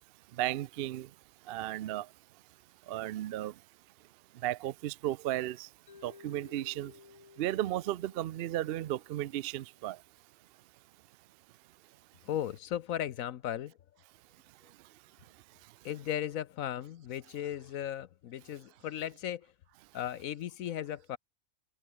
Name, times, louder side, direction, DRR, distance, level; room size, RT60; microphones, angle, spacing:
voice 1, 0.4-1.1 1.5-2.1 2.9-3.5 4.4-5.7 6.0-6.9 7.4-10.0, right 14 dB, 75° right, 0.5 m, -34 dB
Mallet percussion, 5.9-10.0, left 5 dB, 35° left, 0.6 m, -57 dB
voice 2, 12.2-13.7 15.8-19.5 19.9-21.2, left 11 dB, 70° left, 1.1 m, -36 dB
omnidirectional pair, 1.5 m